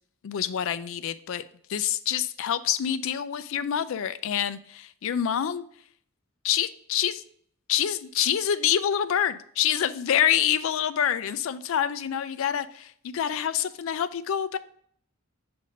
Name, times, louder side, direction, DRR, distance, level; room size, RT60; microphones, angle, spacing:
voice 1, 0.2-1.4 1.7-5.6 6.4-7.2 7.7-14.6, left 9 dB, 70° left, 13 dB, 0.4 m, -26 dB
7.5 x 2.6 x 5.1 m, 0.63 s
head